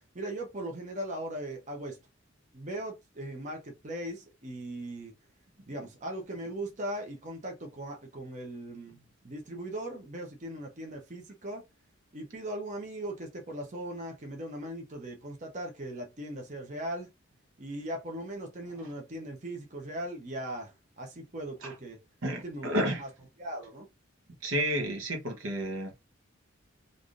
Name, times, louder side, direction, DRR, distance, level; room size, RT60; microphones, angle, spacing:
voice 1, 0.1-2.0 2.5-5.1 5.7-11.6 12.1-17.1 17.6-22.0 22.3-23.1 23.4-23.9, right 1 dB, 35° right, 0.8 m, -39 dB
voice 2, 22.2-23.0 24.4-26.0, right 1 dB, 80° right, 0.9 m, -31 dB
3.3 x 2.6 x 2.5 m
head